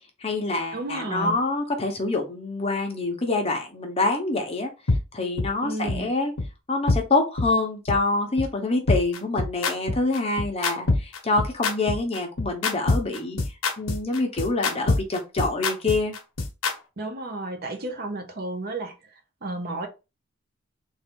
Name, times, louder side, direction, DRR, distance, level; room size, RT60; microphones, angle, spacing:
voice 1, 0.2-4.7 5.1-6.3 6.7-13.4 13.8-16.2, left 2 dB, 30° left, 0.9 m, -26 dB
voice 2, 0.7-1.4 5.6-6.1 17.0-18.9 19.4-19.9, right 2 dB, 45° right, 0.7 m, -32 dB
sound 1, 4.9-5.0 5.4-5.5 5.9-6.0 6.4-6.5 6.9-7.0 7.4-7.5 7.9-8.0 8.4-8.5 8.9-16.7, left 3 dB, 75° left, 0.9 m, -24 dB
3.6 x 2.6 x 3.6 m
head